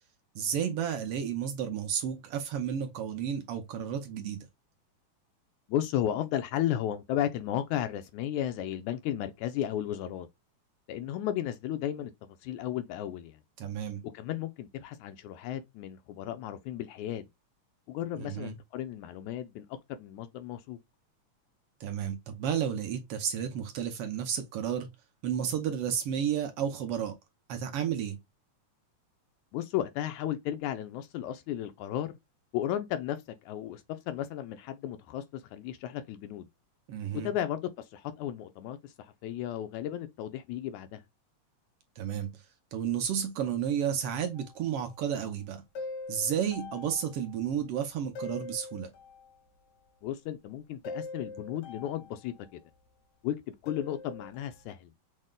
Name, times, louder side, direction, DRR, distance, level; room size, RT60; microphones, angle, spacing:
voice 1, 0.3-4.5 13.6-14.0 18.2-18.5 21.8-24.9 25.2-27.1 27.5-28.2 36.9-37.3 42.0-42.3 42.7-45.6 46.1-48.9, right 8 dB, 70° right, 1.4 m, -32 dB
voice 2, 5.7-10.3 10.9-12.1 12.4-13.4 14.1-17.3 17.9-20.8 29.5-32.2 32.5-36.5 37.2-41.0 50.0-52.6 53.2-54.9, left 11 dB, 80° left, 2.0 m, -34 dB
sound 1, 44.4-44.5 45.8-47.1 47.3-47.4 48.2-49.3 50.8-52.1 53.7-54.6, left 3 dB, 60° left, 1.1 m, -42 dB
6.3 x 2.2 x 3.7 m
omnidirectional pair, 3.4 m